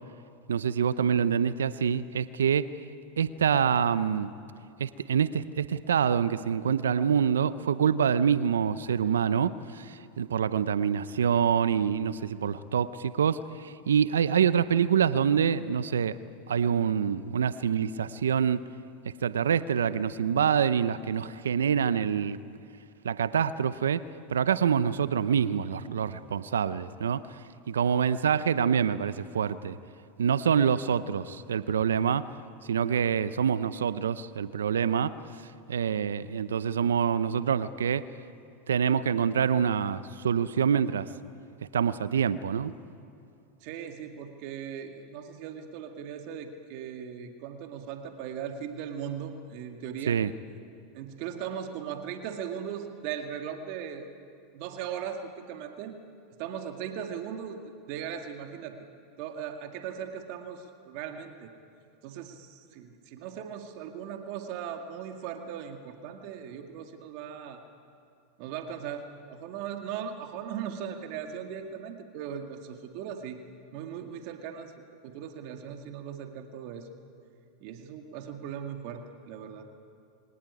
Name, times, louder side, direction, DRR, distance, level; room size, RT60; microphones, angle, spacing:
voice 1, 0.5-2.7 3.2-4.3 4.8-16.1 16.5-18.6 19.2-22.4 23.0-24.0 24.3-27.2 27.7-29.8 30.2-32.3 32.6-35.1 35.7-38.1 38.7-41.1 41.7-42.7 50.1-50.3, right 7 dB, 90° right, 15 dB, 0.7 m, -26 dB
voice 2, 43.6-50.2 50.9-54.1 54.5-56.0 56.4-57.6 57.9-58.8 59.2-61.5 62.0-67.6 68.4-73.4 73.7-74.7 75.0-76.9 77.6-79.6, right 8 dB, 60° right, 5 dB, 2.1 m, -38 dB
23.5 x 18.5 x 9.8 m, 2.4 s
hypercardioid pair, 100°, 0 cm